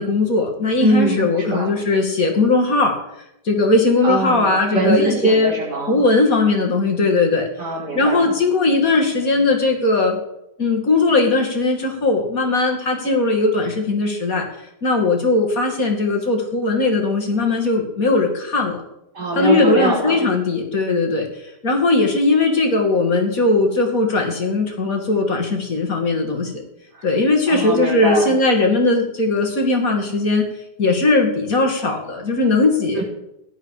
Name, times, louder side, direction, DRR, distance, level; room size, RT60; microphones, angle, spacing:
voice 1, 0.0-2.9 3.4-5.5 5.9-7.5 7.9-10.2 10.6-18.8 19.3-26.6 27.0-30.4 30.8-33.0, left 3 dB, 55° left, 2 dB, 2.9 m, -19 dB
voice 2, 0.8-1.7 4.0-6.0 7.6-8.3 19.1-20.2 26.9-27.1 27.5-28.3 33.0-33.1, right 2 dB, 85° right, -4 dB, 5.9 m, -22 dB
17.0 x 11.5 x 4.9 m, 0.83 s
omnidirectional pair, 1.7 m